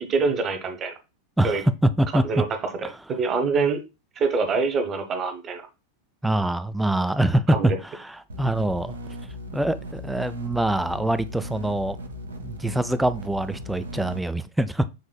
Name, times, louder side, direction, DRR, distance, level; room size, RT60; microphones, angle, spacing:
voice 1, 0.1-0.9 1.4-1.6 2.2-2.4 3.2-3.8 4.2-5.6 7.6-7.8, right 4 dB, 25° right, 0.9 m, -24 dB
voice 2, 1.4-2.2 6.2-9.0 9.5-12.0 12.4-14.8, right 1 dB, 5° right, 0.3 m, -24 dB
sound 1, 8.3-14.2, equal, 75° right, 0.7 m, -37 dB
6.6 x 3.5 x 2.2 m
figure-of-eight pair, 90°, 0 cm